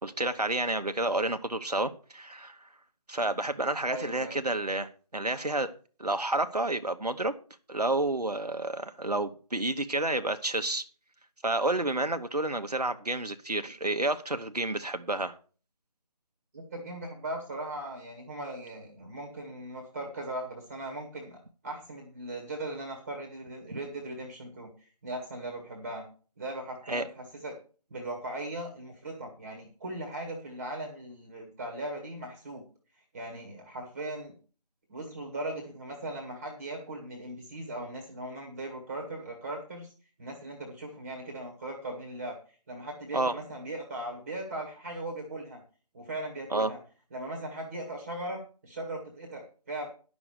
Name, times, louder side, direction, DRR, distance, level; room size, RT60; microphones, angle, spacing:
voice 1, 0.0-2.7 3.1-5.7 6.0-7.4 7.7-10.8 11.4-15.4 23.7-23.8 26.9-27.1 43.1-43.4 46.5-46.7, right 2 dB, 80° right, 1.1 m, -30 dB
voice 2, 3.9-4.4 16.5-21.4 21.6-26.0 26.4-27.5 27.9-32.6 33.1-34.3 34.9-39.9 40.2-42.4 42.7-45.6 45.9-46.8 47.1-49.9, right 1 dB, 20° right, 1.6 m, -38 dB
11.0 x 6.3 x 6.6 m
figure-of-eight pair, 155°, 20 cm